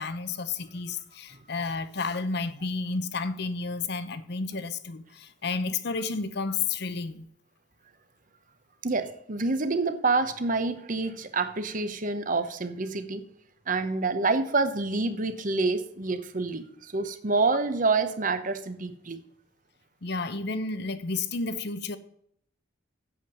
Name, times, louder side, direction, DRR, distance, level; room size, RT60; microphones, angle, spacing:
voice 1, 0.0-7.3 20.0-22.0, left 4 dB, 60° left, 0.8 m, -31 dB
voice 2, 8.8-13.2 13.7-19.2, right 3 dB, 45° right, 1.0 m, -27 dB
8.3 x 7.3 x 7.6 m
head